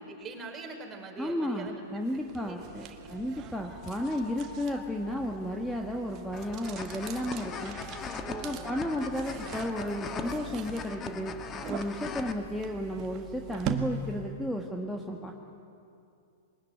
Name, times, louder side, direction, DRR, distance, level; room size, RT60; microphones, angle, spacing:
voice 1, 0.1-1.8 2.1-3.8 8.2-8.9, right 4 dB, 20° right, 2 dB, 4.6 m, -44 dB
voice 2, 1.2-7.8 8.4-11.4 11.7-15.3, equal, 5° left, 1 dB, 1.7 m, -33 dB
sound 1, 2.1-14.4, right 7 dB, 40° right, 1.6 m, -42 dB
sound 2, 2.4-10.4, left 4 dB, 65° left, 6.0 m, -50 dB
sound 3, 6.3-12.3, left 6 dB, 25° left, 1.5 m, -40 dB
22.0 x 20.5 x 9.4 m, 2.5 s
hypercardioid pair, 110°, 0 cm